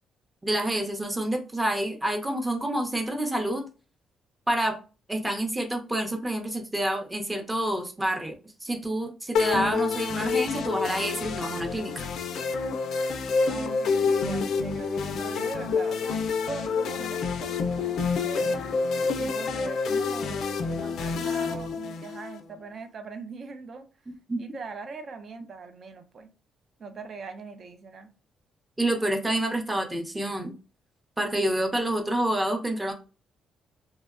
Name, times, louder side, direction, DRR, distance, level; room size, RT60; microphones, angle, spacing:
voice 1, 0.4-3.7 4.5-4.8 5.1-8.3 8.6-12.1 24.3-24.4 28.8-30.5 31.2-32.9, right 1 dB, 15° right, 0.7 m, -28 dB
sound 1, 9.4-22.4, left 5 dB, 70° left, 0.3 m, -28 dB
voice 2, 13.5-18.6 19.2-23.9 24.4-26.3 26.8-28.1, right 4 dB, 50° right, 0.5 m, -41 dB
2.7 x 2.1 x 2.4 m
cardioid pair, 90°, 0 cm